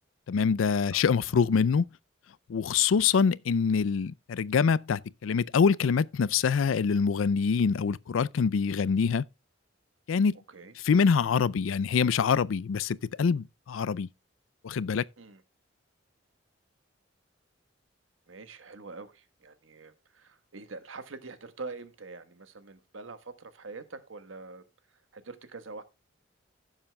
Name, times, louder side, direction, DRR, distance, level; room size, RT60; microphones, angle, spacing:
voice 1, 0.3-1.9 2.5-9.2 10.1-10.4 10.8-14.1 14.6-15.1, left 6 dB, 90° left, 0.4 m, -25 dB
voice 2, 18.3-24.6 24.9-25.8, right 3 dB, 85° right, 1.3 m, -44 dB
15.5 x 7.3 x 2.2 m
head